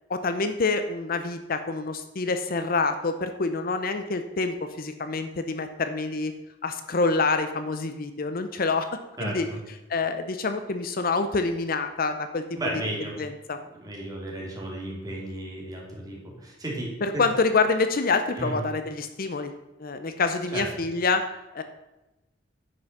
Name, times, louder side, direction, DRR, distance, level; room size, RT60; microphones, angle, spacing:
voice 1, 0.1-6.3 6.6-8.9 9.2-9.5 9.9-12.4 13.2-13.6 17.0-19.5 19.8-21.2 21.5-21.6, left 4 dB, 50° left, 8 dB, 0.7 m, -26 dB
voice 2, 9.2-9.6 12.6-13.1 13.7-17.2 18.4-18.6 20.5-20.7, right 1 dB, 20° right, -2 dB, 2.9 m, -33 dB
9.6 x 6.2 x 6.0 m, 1.0 s
head